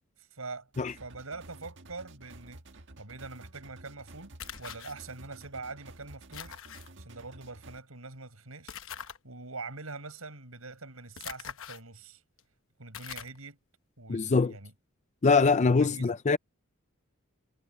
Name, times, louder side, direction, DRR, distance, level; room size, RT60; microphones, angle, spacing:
voice 1, 0.2-2.6 3.0-4.3 4.6-6.6 7.0-12.2 12.8-13.6 14.0-14.7 15.8-16.1, right 3 dB, 90° right, 5.2 m, -44 dB
sound 1, 0.7-7.8, right 2 dB, 60° right, 1.6 m, -51 dB
sound 2, 4.4-4.9 6.3-6.9 8.7-9.2 11.2-11.8 12.4-12.5 12.9-13.4, left 9 dB, 65° left, 1.0 m, -42 dB
voice 2, 14.1-14.5 15.2-16.4, left 4 dB, 35° left, 0.5 m, -23 dB
head